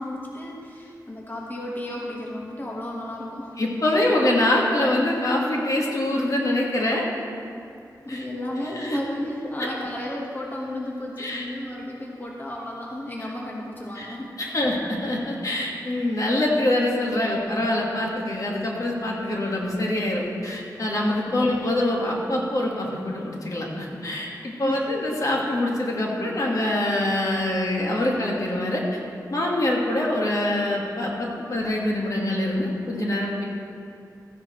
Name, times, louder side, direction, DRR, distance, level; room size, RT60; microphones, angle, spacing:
voice 1, 0.0-3.6 8.0-14.7 21.3-21.4 24.6-24.8, left 1 dB, 30° left, -3 dB, 1.3 m, -33 dB
voice 2, 3.6-7.1 8.1-8.2 8.6-9.0 9.6-9.7 11.2-11.5 14.0-14.1 14.4-28.8 29.3-33.5, left 1 dB, 55° left, -2 dB, 1.6 m, -24 dB
14.5 x 10.0 x 3.1 m, 2.4 s
wide cardioid pair, 80°, 7 cm